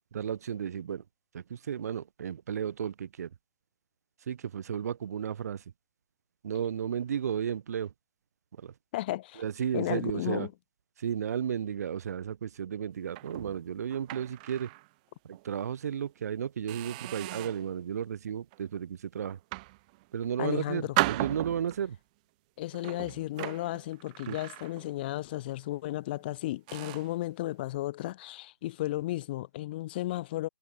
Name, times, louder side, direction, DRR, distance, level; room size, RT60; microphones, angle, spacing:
voice 1, 0.1-1.0 1.3-3.3 4.3-5.6 6.4-7.9 8.6-8.7 9.4-10.5 11.0-14.7 15.2-19.4 20.1-22.0 24.3-24.4, right 8 dB, 40° right, 1.4 m, -33 dB
voice 2, 8.9-9.4 9.7-10.5 20.4-20.9 22.6-30.5, left 16 dB, 25° left, 1.2 m, -34 dB
sound 1, 13.1-14.9 15.3-15.5 16.0-16.2 16.7-17.7 18.3-18.6 19.3-20.3 20.9-21.9 22.7-25.1 25.4-25.6 26.2-26.3 26.7-27.2, right 23 dB, 20° right, 0.9 m, -36 dB
figure-of-eight pair, 150°, 13 cm